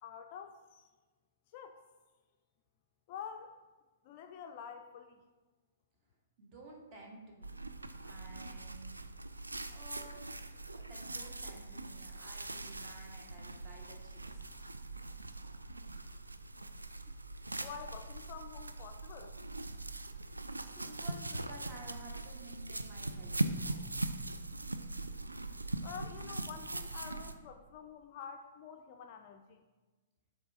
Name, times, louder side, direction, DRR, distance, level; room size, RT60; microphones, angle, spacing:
voice 1, 0.0-0.9 1.5-1.8 3.1-3.5 4.0-5.2 17.1-17.2 17.6-19.3 25.8-29.6, left 7 dB, 40° left, 5 dB, 0.4 m, -48 dB
voice 2, 6.4-7.6 8.0-8.9 9.7-10.2 10.7-14.7 20.7-24.0, right 2 dB, 30° right, -1 dB, 1.4 m, -53 dB
sound 1, 7.4-27.3, right 2 dB, 80° right, 0.4 m, -41 dB
7.2 x 3.2 x 4.8 m, 1.3 s
figure-of-eight pair, 115°, 0 cm